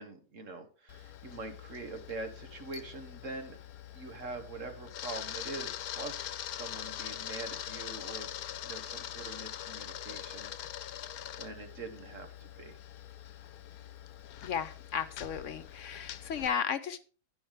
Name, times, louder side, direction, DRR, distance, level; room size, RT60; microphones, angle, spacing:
voice 1, 0.0-3.6 3.9-10.5 11.4-12.8, right 3 dB, 60° right, 6 dB, 1.8 m, -44 dB
Camera, 0.9-16.5, left 11 dB, 90° left, 1.2 m, -43 dB
voice 2, 14.4-17.0, left 7 dB, 65° left, 12 dB, 1.0 m, -34 dB
11.0 x 9.8 x 3.3 m, 0.38 s
omnidirectional pair, 1.5 m